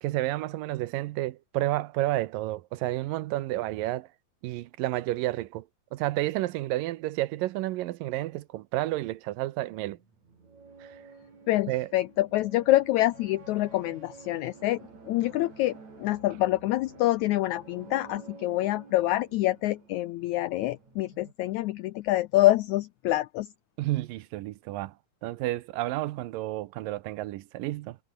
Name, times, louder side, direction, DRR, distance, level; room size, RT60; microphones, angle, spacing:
voice 1, 0.0-4.1 4.4-5.6 5.9-10.0 11.7-11.9 23.8-24.9 25.2-28.0, right 16 dB, 75° right, 2.4 m, -30 dB
sound 1, 9.7-21.3, right 4 dB, 50° right, 6.4 m, -51 dB
voice 2, 11.5-14.8 15.1-23.5, left 16 dB, 90° left, 1.6 m, -26 dB
omnidirectional pair, 4.1 m